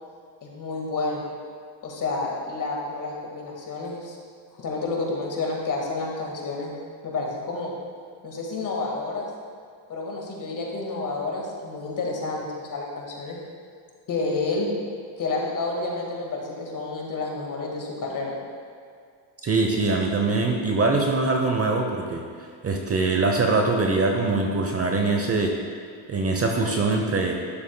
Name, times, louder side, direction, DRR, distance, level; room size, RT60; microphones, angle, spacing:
voice 1, 0.4-1.2 1.8-4.2 4.6-6.7 7.0-7.8 8.2-9.3 9.9-13.4 14.1-14.7 15.2-18.3, left 3 dB, 40° left, -1 dB, 1.9 m, -30 dB
voice 2, 19.4-22.2 22.6-25.5 26.1-27.3, right 3 dB, 30° right, 2 dB, 0.8 m, -23 dB
11.5 x 7.2 x 2.3 m, 2.2 s
supercardioid pair, 95°, 50 cm